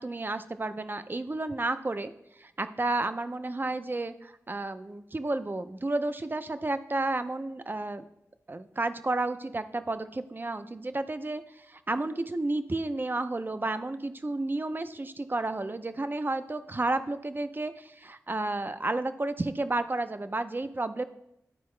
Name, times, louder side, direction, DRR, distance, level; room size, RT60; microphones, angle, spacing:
voice 1, 0.0-2.1 2.4-8.0 8.5-21.0, right 2 dB, 35° right, 10 dB, 0.5 m, -31 dB
11.5 x 4.6 x 3.2 m, 0.81 s
wide cardioid pair, 60°, 6 cm